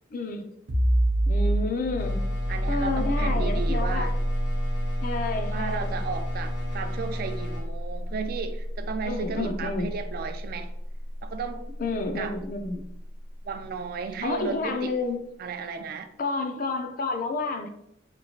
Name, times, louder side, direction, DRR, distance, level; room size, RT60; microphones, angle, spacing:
voice 1, 0.1-0.5 1.3-2.2 2.7-4.1 5.0-6.0 9.1-9.9 11.8-12.8 14.2-15.2 16.2-17.7, left 3 dB, 45° left, 6 dB, 0.4 m, -30 dB
sound 1, 0.7-12.1, equal, 75° right, 0.7 m, -28 dB
sound 2, 2.0-7.6, left 1 dB, 60° left, 0.8 m, -37 dB
voice 2, 2.5-4.1 5.5-10.7 11.2-11.6 12.2-12.4 13.4-14.9 15.4-16.1, right 5 dB, 50° right, 8 dB, 0.3 m, -34 dB
3.5 x 2.9 x 2.8 m, 0.78 s
head